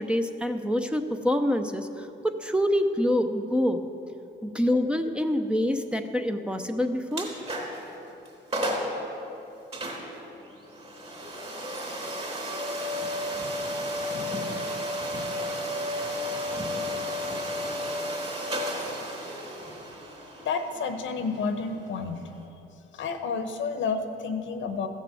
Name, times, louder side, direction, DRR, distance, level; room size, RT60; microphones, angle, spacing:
voice 1, 0.0-3.8 4.4-7.3, left 1 dB, 5° right, 6 dB, 0.7 m, -26 dB
sound 1, 7.1-7.9 8.3-8.4 8.5-9.0 9.7-22.4, equal, 30° right, 3.4 m, -33 dB
voice 2, 20.4-22.3 22.9-24.9, left 5 dB, 75° left, 7 dB, 1.1 m, -30 dB
15.0 x 6.7 x 7.7 m, 2.9 s
cardioid pair, 90°, 20 cm